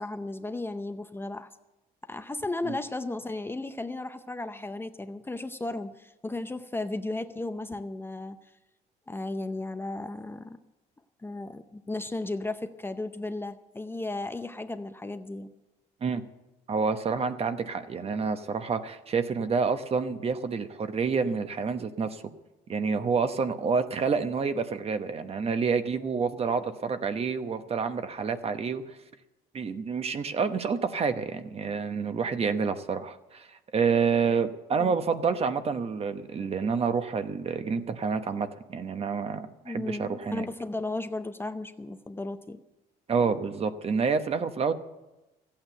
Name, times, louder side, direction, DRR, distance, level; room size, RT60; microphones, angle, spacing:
voice 1, 0.0-1.5 2.1-8.4 9.1-10.6 11.2-15.5 34.8-34.9 39.6-42.6, left 2 dB, 15° left, 8 dB, 0.7 m, -35 dB
voice 2, 16.7-22.2 22.7-29.0 29.5-40.5 43.1-44.7, right 5 dB, 35° right, 9 dB, 1.0 m, -28 dB
14.5 x 8.8 x 7.8 m, 1.0 s
cardioid pair, 110°, 17 cm